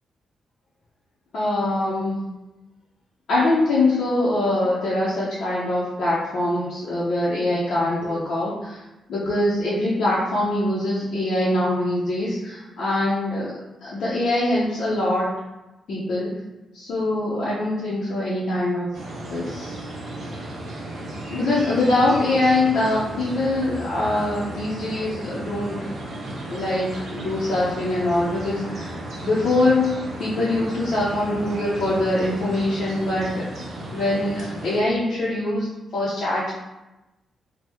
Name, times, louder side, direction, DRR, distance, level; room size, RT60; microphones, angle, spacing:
voice 1, 1.3-2.2 3.3-8.8 9.1-13.5 13.8-15.3 15.9-16.3 16.7-18.9 19.3-19.8 21.3-25.9 26.5-29.0 29.2-33.6 33.9-35.7 35.9-36.5, left 2 dB, 60° left, -8 dB, 0.6 m, -23 dB
sound 1, 18.9-34.8, right 1 dB, 55° right, 0.6 m, -34 dB
2.9 x 2.0 x 3.4 m, 1.0 s
wide cardioid pair, 155°, 0 cm